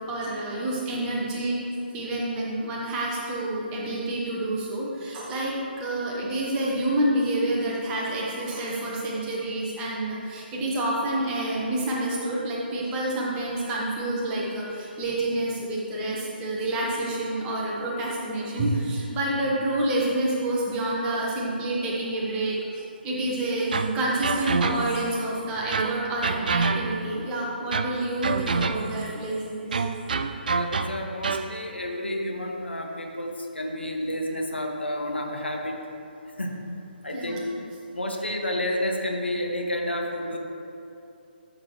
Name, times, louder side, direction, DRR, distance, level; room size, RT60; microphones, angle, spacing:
voice 1, 0.1-1.6 1.9-29.8 37.1-37.4, right 1 dB, 15° right, -4 dB, 1.2 m, -28 dB
sound 1, 23.7-25.1 25.7-27.2 27.7-29.1 29.7-31.6, right 4 dB, 50° right, 0.4 m, -27 dB
voice 2, 30.5-35.8 36.4-36.6 37.0-37.4 37.9-40.4, left 1 dB, 75° left, 1 dB, 1.2 m, -30 dB
12.0 x 6.5 x 3.1 m, 2.8 s
figure-of-eight pair, 140°, 6 cm